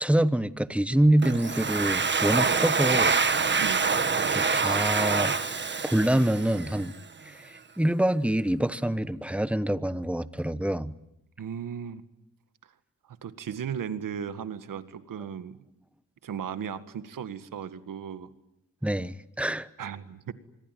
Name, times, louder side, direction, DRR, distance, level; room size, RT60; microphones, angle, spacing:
voice 1, 0.0-3.2 4.3-5.4 5.8-6.9 7.2-10.9 18.8-19.7, right 1 dB, 5° right, 15 dB, 1.0 m, -26 dB
Domestic sounds home sounds, 1.2-6.8, right 5 dB, 35° right, 1.6 m, -26 dB
voice 2, 3.6-4.0 11.4-12.0 13.1-15.6 16.2-18.3 19.8-20.3, right 8 dB, 80° right, 11 dB, 1.8 m, -36 dB
26.0 x 22.5 x 9.3 m, 0.84 s
cardioid pair, 95°, 32 cm